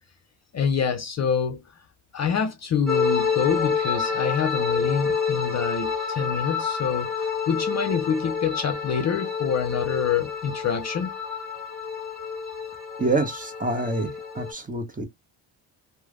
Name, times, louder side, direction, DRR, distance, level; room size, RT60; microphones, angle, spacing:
voice 1, 0.5-1.7 2.1-11.2, left 7 dB, 40° left, 0.5 m, -26 dB
sound 1, 2.9-14.5, left 5 dB, ahead, 1.2 m, -28 dB
voice 2, 13.0-15.1, right 2 dB, 20° right, 0.9 m, -27 dB
3.1 x 2.1 x 2.3 m
supercardioid pair, 70°, 44 cm